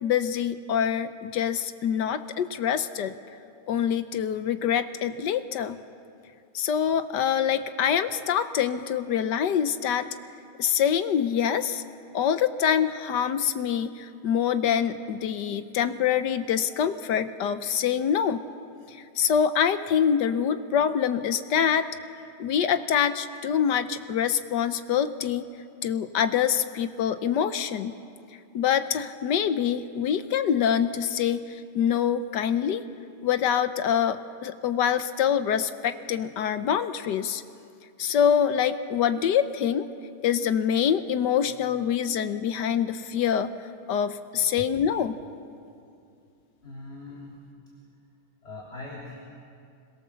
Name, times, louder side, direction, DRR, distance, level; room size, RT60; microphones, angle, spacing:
voice 1, 0.0-3.1 3.7-5.8 6.5-10.1 10.6-11.8 12.1-18.4 18.9-21.9 22.4-25.4 25.8-28.0 28.5-32.8 33.2-37.4 38.0-39.9 40.2-43.5 43.9-45.1, left 8 dB, 65° left, 11 dB, 1.2 m, -25 dB
voice 2, 46.6-47.4 48.4-49.2, left 2 dB, 30° left, -5 dB, 3.6 m, -41 dB
26.0 x 22.0 x 7.0 m, 2.4 s
omnidirectional pair, 2.4 m